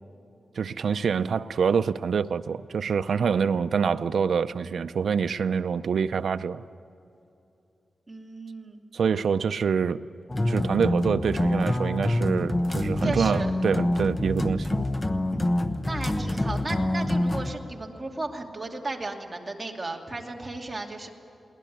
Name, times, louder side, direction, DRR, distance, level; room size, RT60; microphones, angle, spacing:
voice 1, 0.6-6.6 8.9-10.0 10.5-14.8, right 6 dB, 80° right, 12 dB, 0.6 m, -26 dB
voice 2, 8.1-8.8 13.0-13.5 15.3-21.1, right 2 dB, 25° right, 1 dB, 2.6 m, -35 dB
sound 1, 10.3-17.5, left 1 dB, 20° left, 1.1 m, -26 dB
22.0 x 18.5 x 9.4 m, 2.7 s
wide cardioid pair, 105°, 0 cm